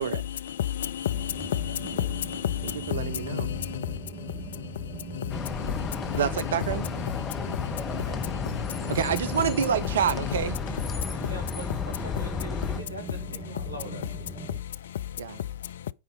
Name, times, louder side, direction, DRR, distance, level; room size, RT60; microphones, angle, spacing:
voice 1, 0.0-6.2 6.7-9.0 9.3-9.4 9.8-9.9 10.2-10.3 10.9-11.3 14.4-15.9, left 11 dB, 60° left, 0.3 m, -33 dB
sound 1, 1.1-14.6, right 5 dB, 35° right, 1.8 m, -41 dB
voice 2, 1.7-2.4 8.0-8.2 11.0-14.1, right 1 dB, 85° right, 3.1 m, -42 dB
voice 3, 2.6-3.5 6.2-6.9 8.9-10.6 15.2-15.4, right 8 dB, 65° right, 0.5 m, -28 dB
sound 2, 5.3-12.8, left 6 dB, 25° left, 0.9 m, -33 dB
9.1 x 4.0 x 5.2 m
figure-of-eight pair, 90°, 0 cm